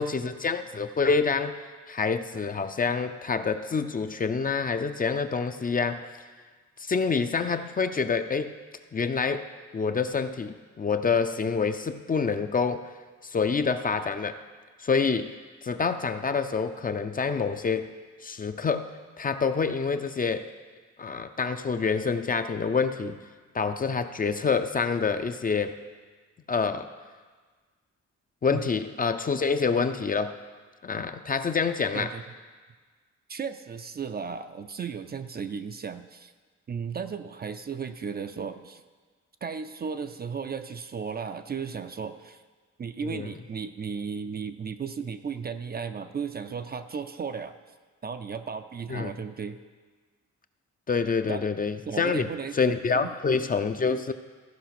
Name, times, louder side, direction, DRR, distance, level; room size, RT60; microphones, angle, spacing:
voice 1, 0.0-1.6 1.9-6.1 6.8-8.5 8.9-9.5 9.7-12.9 13.2-14.4 14.8-15.3 15.6-17.9 18.2-18.9 19.2-20.5 21.0-23.2 23.5-25.8 26.5-26.9 28.4-30.3 30.8-32.1 43.0-43.3 48.9-49.1 50.9-52.3 52.5-54.1, left 5 dB, 30° left, 9 dB, 0.5 m, -27 dB
voice 2, 33.3-36.3 36.7-38.8 39.4-42.4 42.8-47.6 48.0-49.6 51.3-51.5 51.9-52.6 52.9-53.1, right 6 dB, 35° right, 9 dB, 0.4 m, -35 dB
14.5 x 5.0 x 5.9 m, 1.5 s
cardioid pair, 100°, 29 cm